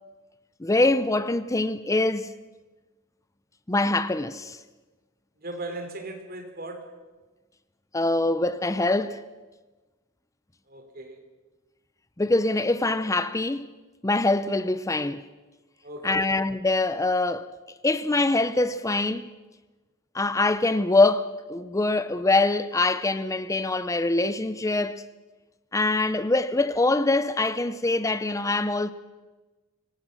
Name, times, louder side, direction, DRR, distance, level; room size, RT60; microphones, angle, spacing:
voice 1, 0.6-2.3 3.7-4.6 7.9-9.2 12.2-13.7 14.0-15.2 16.0-17.5 17.8-19.3 20.1-25.0 25.7-28.9, left 2 dB, 15° left, 0.6 m, -24 dB
voice 2, 5.4-6.9 10.7-11.2 15.8-16.3, right 2 dB, 45° right, 3.4 m, -38 dB
26.0 x 18.0 x 6.6 m
head